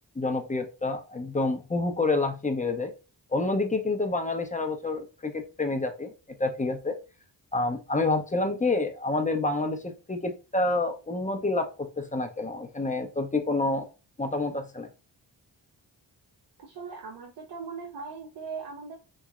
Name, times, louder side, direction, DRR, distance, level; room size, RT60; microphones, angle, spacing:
voice 1, 0.2-2.9 3.3-6.1 6.4-7.0 7.5-13.9 14.2-14.9, left 2 dB, 15° left, 6 dB, 0.6 m, -28 dB
voice 2, 16.6-19.0, right 5 dB, 60° right, 0 dB, 0.6 m, -39 dB
3.1 x 2.7 x 2.3 m, 0.31 s
cardioid pair, 45°, 46 cm